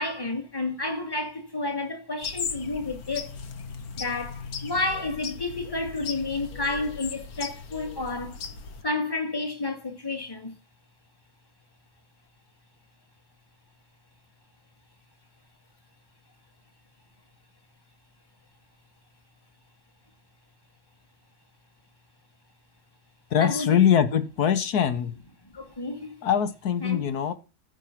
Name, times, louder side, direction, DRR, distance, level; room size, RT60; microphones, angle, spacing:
voice 1, 0.0-3.3 4.0-8.4 8.8-10.6 23.4-23.8 25.5-26.2 26.8-27.1, left 2 dB, 15° left, 2.1 m, -30 dB
sound 1, 2.2-8.8, left 5 dB, 75° left, 1.7 m, -37 dB
voice 2, 23.3-25.1 26.2-27.3, left 8 dB, 90° left, 1.7 m, -22 dB
15.0 x 5.4 x 5.9 m
omnidirectional pair, 1.6 m